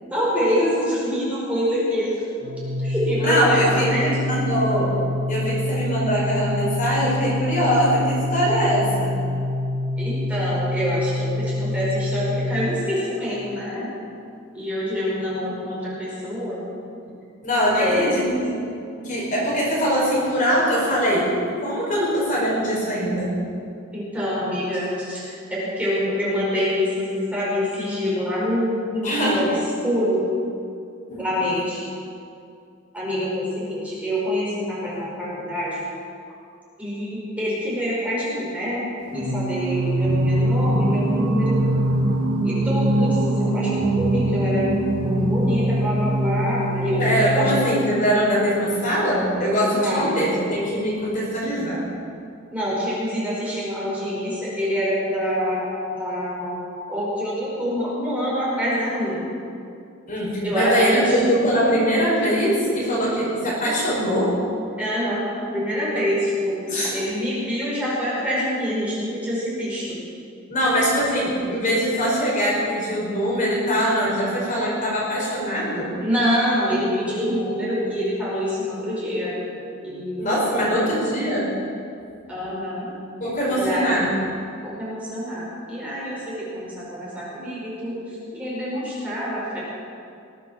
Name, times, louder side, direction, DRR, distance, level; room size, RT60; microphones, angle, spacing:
voice 1, 0.1-2.1 2.8-4.0 10.0-13.9 14.5-16.6 17.7-18.2 23.9-30.3 31.2-31.9 32.9-35.8 36.8-38.9 39.1-41.6 42.4-47.7 49.7-50.3 52.5-55.7 55.9-56.6 56.9-59.2 60.4-61.2 64.8-66.6 66.9-69.8 76.0-79.3 79.8-80.3 80.6-80.8 82.3-82.9 83.5-84.1 84.6-88.0 88.3-89.6, equal, 5° right, -8 dB, 5.0 m, -26 dB
Organ, 2.4-13.3, left 1 dB, 65° right, 2.1 m, -26 dB
voice 2, 3.2-4.9 5.3-9.2 17.4-18.6 19.0-21.3 21.6-23.3 29.0-29.4 31.1-31.2 47.0-51.8 60.1-64.3 66.7-66.9 70.5-75.9 80.2-81.5 83.2-84.1, equal, 40° left, -5 dB, 5.0 m, -22 dB
Singing, 39.1-48.0, right 1 dB, 45° right, 2.7 m, -22 dB
20.0 x 8.3 x 7.3 m, 2.4 s
head